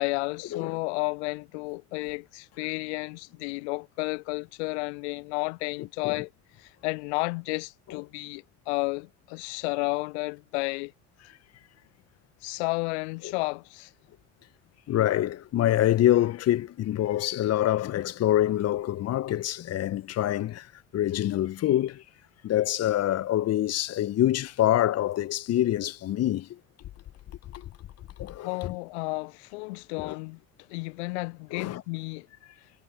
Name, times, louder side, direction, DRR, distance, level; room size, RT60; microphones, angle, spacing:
voice 1, 0.0-6.3 6.6-10.9 12.4-13.9 28.4-30.4 30.7-32.3, left 28 dB, 60° left, 1.1 m, -32 dB
voice 2, 14.9-22.0 22.4-26.6 27.5-27.7 28.2-28.7 30.0-30.2 31.5-31.8, left 13 dB, 40° left, 1.4 m, -26 dB
figure-of-eight pair, 60°, 38 cm